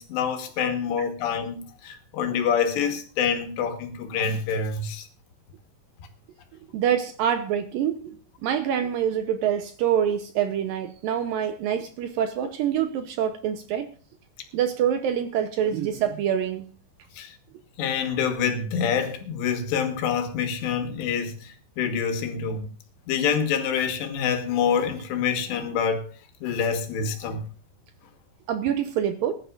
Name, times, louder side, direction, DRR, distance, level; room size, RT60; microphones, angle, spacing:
voice 1, 0.0-5.1 17.2-17.4 17.8-22.7 23.1-26.1 26.4-27.4, left 7 dB, 90° left, 3.7 m, -26 dB
voice 2, 6.7-13.9 14.5-16.7 28.5-29.3, right 9 dB, 75° right, 2.2 m, -26 dB
20.5 x 11.0 x 2.5 m
omnidirectional pair, 4.8 m